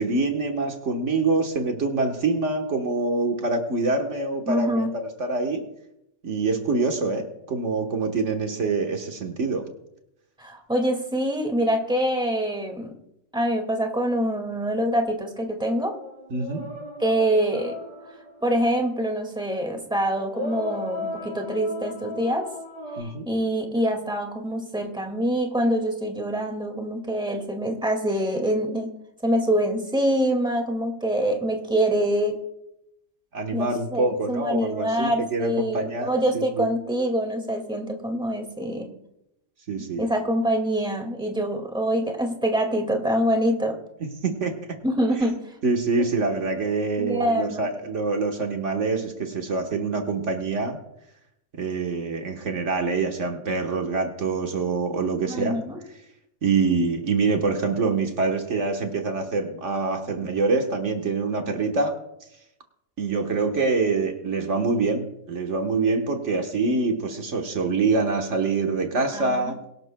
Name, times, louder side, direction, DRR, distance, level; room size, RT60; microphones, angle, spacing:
voice 1, 0.0-5.7 6.2-9.7 16.3-16.7 23.0-23.3 33.3-36.7 39.7-40.1 44.0-44.8 45.6-50.8 51.6-55.6 56.4-61.9 63.0-69.6, right 3 dB, 70° right, 3 dB, 1.6 m, -25 dB
voice 2, 4.5-4.9 10.4-12.9 13.3-15.9 17.0-17.8 18.4-22.5 23.0-28.9 29.2-32.4 33.5-38.9 40.0-43.8 44.8-45.4 47.0-47.7 55.3-55.8 69.1-69.5, equal, 5° right, 3 dB, 1.9 m, -25 dB
sound 1, 15.7-18.9 20.2-23.0, left 2 dB, 35° right, 5.8 m, -36 dB
22.5 x 12.5 x 2.2 m, 0.83 s
omnidirectional pair, 1.3 m